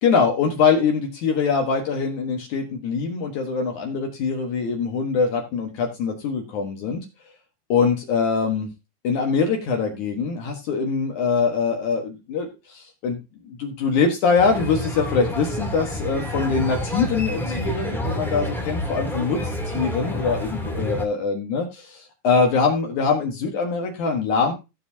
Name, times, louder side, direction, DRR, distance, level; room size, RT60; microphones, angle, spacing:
voice 1, 0.0-7.0 7.7-8.7 9.0-13.2 13.4-24.5, left 5 dB, 85° left, 2 dB, 1.7 m, -23 dB
sound 1, 14.4-21.0, left 1 dB, ahead, 0.5 m, -28 dB
16.5 x 7.2 x 2.8 m, 0.27 s
omnidirectional pair, 5.7 m